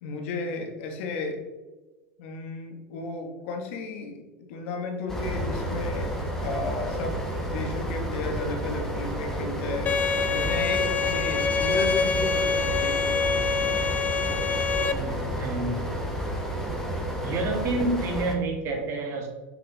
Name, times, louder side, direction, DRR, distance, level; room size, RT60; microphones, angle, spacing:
voice 1, 0.0-1.4 2.2-6.1 6.4-7.2 7.5-9.9 10.3-13.8, left 3 dB, 70° left, 3 dB, 1.5 m, -34 dB
sound 1, 5.1-18.3, equal, 5° left, 1.2 m, -31 dB
Bowed string instrument, 9.9-14.9, left 5 dB, 20° left, 0.4 m, -26 dB
voice 2, 14.9-16.0 17.2-19.3, right 2 dB, 40° right, 1 dB, 1.8 m, -29 dB
6.3 x 5.7 x 4.0 m, 1.2 s
supercardioid pair, 145°, 7 cm